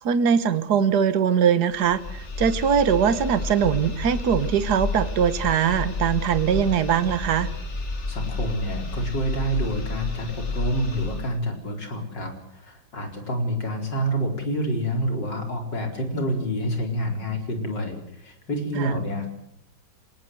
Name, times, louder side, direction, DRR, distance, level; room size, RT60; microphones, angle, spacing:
voice 1, 0.0-7.5 18.8-18.9, right 7 dB, 65° right, 13 dB, 1.8 m, -21 dB
sound 1, 1.7-11.4, left 3 dB, 40° left, 2.4 m, -31 dB
voice 2, 8.1-19.3, equal, 85° left, 4 dB, 5.2 m, -28 dB
26.5 x 19.0 x 7.9 m, 0.72 s
omnidirectional pair, 1.9 m